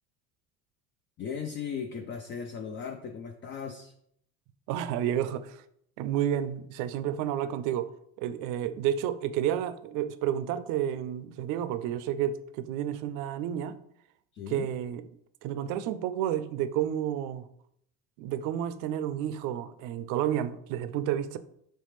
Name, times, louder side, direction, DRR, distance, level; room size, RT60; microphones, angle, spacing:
voice 1, 1.2-3.9 14.3-14.7, left 6 dB, 35° left, 5 dB, 0.4 m, -37 dB
voice 2, 4.7-5.6 6.0-7.9 8.2-13.8 14.5-15.1 15.4-17.5 18.2-21.4, right 10 dB, 65° right, 13 dB, 0.5 m, -30 dB
4.3 x 3.3 x 3.2 m, 0.70 s
supercardioid pair, 85°, 35 cm